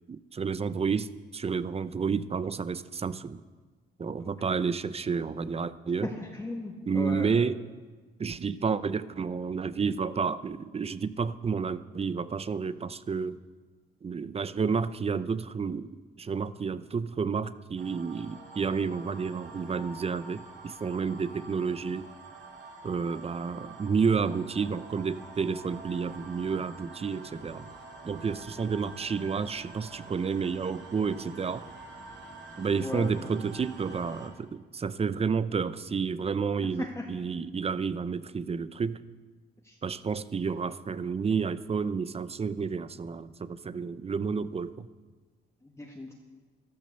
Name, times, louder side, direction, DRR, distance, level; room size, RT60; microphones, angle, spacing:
voice 1, 0.1-3.4 4.0-6.1 6.9-7.6 8.2-13.4 14.0-22.1 22.8-27.7 28.0-31.6 32.6-39.0 39.8-44.9, right 5 dB, 30° right, 15 dB, 0.6 m, -30 dB
voice 2, 6.0-7.3 32.8-33.1 36.8-37.1 39.6-39.8 45.6-46.1, left 2 dB, 15° left, -1 dB, 1.8 m, -37 dB
sound 1, 17.8-34.3, right 3 dB, 70° right, 3.2 m, -47 dB
13.5 x 12.5 x 6.8 m, 1.4 s
cardioid pair, 90°, 20 cm